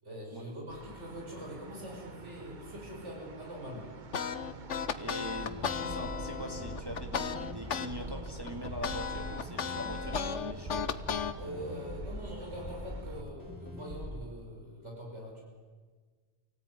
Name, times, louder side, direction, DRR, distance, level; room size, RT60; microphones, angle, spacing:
voice 1, 0.0-3.9 11.3-15.4, equal, 80° right, -2 dB, 6.2 m, -43 dB
sound 1, 0.7-13.2, right 4 dB, 45° right, 1.2 m, -47 dB
sound 2, 4.1-7.9 8.3-11.3, left 7 dB, 85° left, 1.4 m, -35 dB
voice 2, 4.9-10.9, equal, 20° right, 2 dB, 2.3 m, -42 dB
sound 3, 5.4-14.2, equal, 65° left, 5.1 m, -43 dB
28.0 x 18.0 x 9.7 m, 1.5 s
omnidirectional pair, 1.2 m